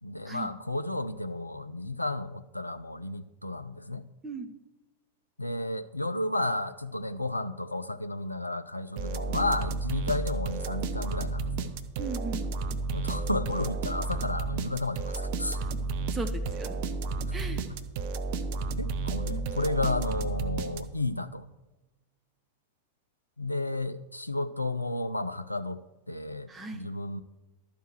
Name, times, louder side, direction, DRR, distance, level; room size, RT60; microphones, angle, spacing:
voice 1, 0.0-4.1 5.4-11.7 12.9-15.6 17.3-17.4 17.7-17.8 18.8-21.4 23.4-27.2, left 2 dB, 85° left, 11 dB, 0.4 m, -32 dB
sound 1, 9.0-21.2, right 3 dB, 50° right, 0.6 m, -32 dB
voice 2, 12.0-12.5 16.1-16.8 17.3-17.6 26.5-26.9, right 3 dB, 15° right, 5 dB, 1.1 m, -37 dB
12.5 x 4.6 x 7.9 m, 1.1 s
figure-of-eight pair, 90°, 0 cm